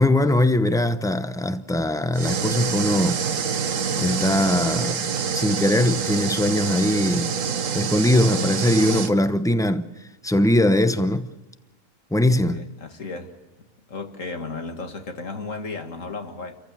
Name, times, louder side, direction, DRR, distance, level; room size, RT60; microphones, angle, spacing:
voice 1, 0.0-3.2 4.0-7.4 7.7-9.9 10.2-11.3 12.1-12.6, left 1 dB, 5° left, 0.7 m, -21 dB
sound 1, 2.1-9.1, right 6 dB, 70° right, 1.4 m, -26 dB
voice 2, 12.4-13.3 13.9-16.6, left 3 dB, 70° left, 2.5 m, -34 dB
29.0 x 15.0 x 8.5 m
omnidirectional pair, 1.4 m